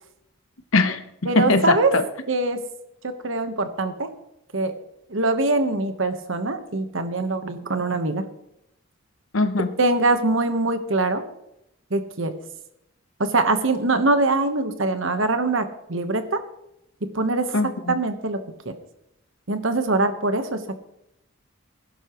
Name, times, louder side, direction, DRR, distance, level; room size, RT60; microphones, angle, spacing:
voice 1, 0.7-2.0 9.3-9.7 17.5-17.9, left 3 dB, 75° left, 9 dB, 1.0 m, -21 dB
voice 2, 1.2-1.9 2.3-2.6 3.0-4.1 4.5-4.7 5.1-8.2 9.8-11.2 11.9-12.3 13.2-16.4 17.0-17.6 17.9-18.7 19.5-20.6, right 2 dB, 65° right, 8 dB, 1.3 m, -23 dB
19.5 x 11.0 x 3.1 m, 0.83 s
head